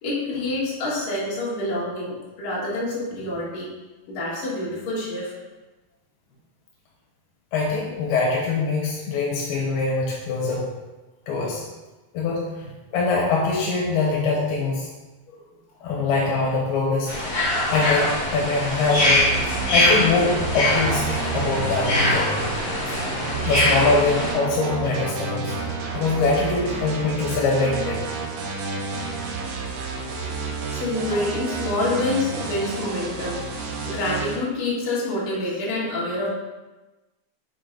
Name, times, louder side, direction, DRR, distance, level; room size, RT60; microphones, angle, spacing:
voice 1, 0.0-3.7 4.1-5.3 15.3-15.4 15.8-16.0 30.7-33.4 33.8-36.3, left 2 dB, 65° left, -6 dB, 3.3 m, -27 dB
voice 2, 7.5-10.7 11.3-11.6 12.1-12.4 12.9-14.9 15.8-17.1 17.7-22.5 23.5-25.5 25.9-28.1 30.0-30.1, left 3 dB, 85° left, -3 dB, 3.1 m, -23 dB
sound 1, 17.1-24.3, left 1 dB, 40° left, 2.1 m, -23 dB
sound 2, 19.0-34.4, right 4 dB, 90° right, 3.0 m, -30 dB
7.2 x 4.9 x 3.9 m, 1.1 s
omnidirectional pair, 4.4 m